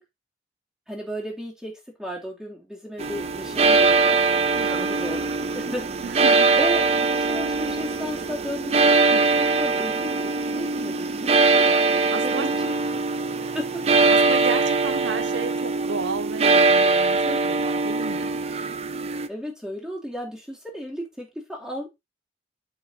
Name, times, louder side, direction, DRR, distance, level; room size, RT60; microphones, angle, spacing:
voice 1, 0.9-4.2 4.6-5.2 5.5-5.9 6.6-6.9 7.2-12.5 13.5-13.8 17.2-17.4 19.3-21.9, equal, 5° right, 3.0 m, -34 dB
sound 1, 3.0-19.3, right 3 dB, 35° right, 0.6 m, -22 dB
voice 2, 4.6-4.9 6.0-6.6 12.1-12.5 13.2-13.3 14.1-18.3, right 5 dB, 80° right, 0.6 m, -32 dB
8.7 x 7.3 x 2.8 m
head